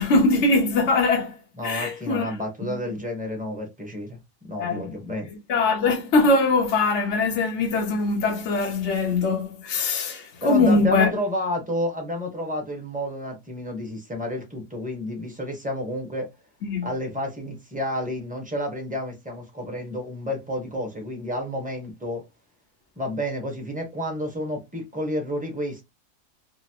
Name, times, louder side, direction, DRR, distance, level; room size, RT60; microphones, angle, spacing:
voice 1, 0.0-1.4 1.6-2.3 2.6-2.8 4.5-4.9 5.5-11.1 16.6-16.9, left 3 dB, 55° left, 1.0 m, -22 dB
voice 2, 1.6-5.3 10.4-16.3 16.8-22.2 23.0-25.8, left 1 dB, 5° right, 0.8 m, -30 dB
3.8 x 2.0 x 2.8 m
omnidirectional pair, 1.5 m